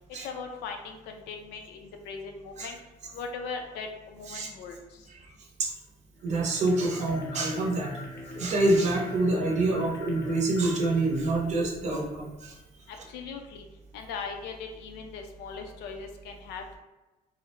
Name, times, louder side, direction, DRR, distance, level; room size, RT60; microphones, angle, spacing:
voice 1, 0.1-2.8 3.1-5.1 12.9-13.7 13.9-16.8, left 5 dB, 85° left, 4 dB, 0.4 m, -39 dB
sound 1, 6.1-12.4, left 1 dB, 15° left, 0.5 m, -42 dB
voice 2, 6.2-7.9 8.4-12.5, right 2 dB, 45° right, -1 dB, 0.6 m, -26 dB
2.4 x 2.0 x 2.9 m, 1.1 s
cardioid pair, 110°, 17 cm